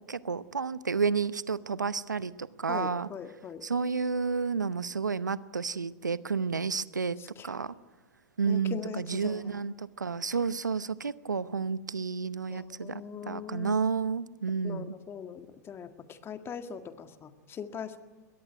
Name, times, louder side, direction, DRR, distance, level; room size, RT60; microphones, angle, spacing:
voice 1, 0.0-3.1 3.6-7.2 7.4-7.7 8.4-13.0 13.3-15.0, right 5 dB, 90° right, 17 dB, 0.8 m, -31 dB
voice 2, 2.7-3.6 7.2-7.5 8.5-9.6 12.5-13.8 14.6-18.0, left 7 dB, 25° left, 8 dB, 1.9 m, -41 dB
22.5 x 19.0 x 9.4 m, 1.3 s
figure-of-eight pair, 100°, 10 cm